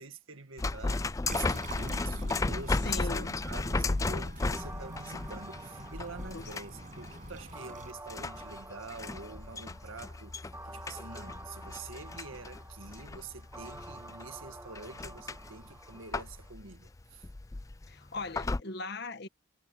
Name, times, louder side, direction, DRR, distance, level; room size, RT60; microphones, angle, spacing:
voice 1, 0.0-17.3, right 4 dB, 75° right, 2.0 m, -46 dB
sound 1, 0.6-18.6, left 3 dB, 15° left, 0.3 m, -35 dB
sound 2, 1.2-7.9, right 2 dB, 40° right, 6.7 m, -47 dB
voice 2, 2.8-3.4 6.3-6.4 17.9-19.3, left 3 dB, 55° left, 1.5 m, -39 dB
sound 3, 4.5-16.5, right 2 dB, 15° right, 2.3 m, -50 dB
head